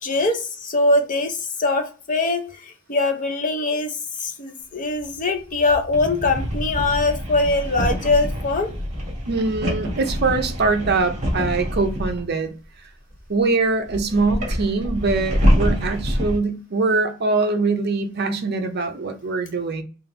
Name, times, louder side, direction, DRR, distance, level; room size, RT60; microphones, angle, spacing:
voice 1, 0.0-8.7, left 2 dB, 35° left, 0.7 m, -22 dB
sound 1, 5.0-12.3 13.1-13.2 13.9-16.4, equal, 30° right, 1.4 m, -25 dB
voice 2, 9.3-12.5 13.3-19.8, right 3 dB, 50° right, 0.6 m, -23 dB
3.8 x 2.5 x 3.8 m
head